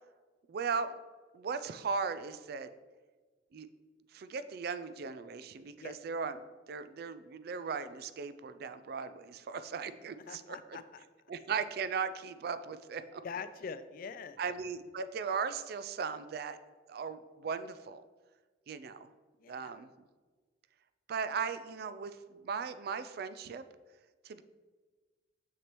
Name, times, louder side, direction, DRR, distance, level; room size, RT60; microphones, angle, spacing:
voice 1, 0.5-1.0 1.3-2.7 3.5-3.7 4.1-10.4 10.7-10.8 11.3-13.2 14.4-16.6 16.9-18.0 18.7-19.1 19.5-19.9 21.1-23.6 24.2-24.4, right 5 dB, 55° right, 12 dB, 0.3 m, -37 dB
voice 2, 10.2-11.0 13.2-14.4 19.4-19.8, left 5 dB, 50° left, 13 dB, 0.3 m, -44 dB
6.6 x 6.0 x 3.0 m, 1.3 s
head